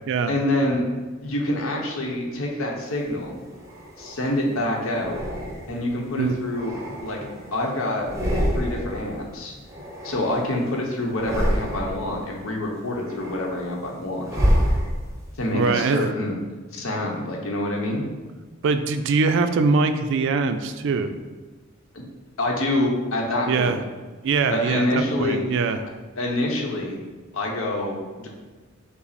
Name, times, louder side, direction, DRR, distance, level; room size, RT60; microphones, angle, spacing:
voice 1, 0.3-0.8 1.2-3.4 4.0-5.2 5.7-6.7 7.0-7.2 7.5-8.1 8.5-9.5 10.0-14.3 15.4-16.4 16.7-18.1 21.9-22.1 22.4-23.7 24.5-25.4 26.2-27.0 27.3-28.3, left 1 dB, 80° left, 0 dB, 0.8 m, -26 dB
sound 1, 3.1-4.3 4.9-5.9 6.4-7.6 7.9-9.1 9.3-10.7 11.1-12.1 12.6-15.3, equal, 15° right, 0.7 m, -27 dB
voice 2, 15.5-16.1 18.6-21.1 23.5-23.8 24.2-25.8, right 4 dB, 65° right, 9 dB, 0.3 m, -22 dB
5.7 x 2.0 x 4.1 m, 1.4 s
head